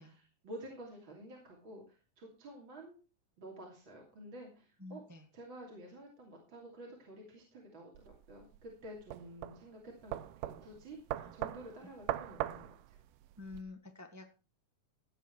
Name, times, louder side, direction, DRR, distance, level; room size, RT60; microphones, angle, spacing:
voice 1, 0.0-3.0 3.4-5.0 5.3-13.0, right 1 dB, 40° right, -1 dB, 3.3 m, -51 dB
voice 2, 4.8-5.2 11.2-11.3 13.4-14.4, left 3 dB, 20° right, 5 dB, 0.4 m, -48 dB
sound 1, 7.9-13.6, right 14 dB, 80° right, 2.3 m, -41 dB
16.5 x 8.4 x 4.6 m, 0.35 s
omnidirectional pair, 3.8 m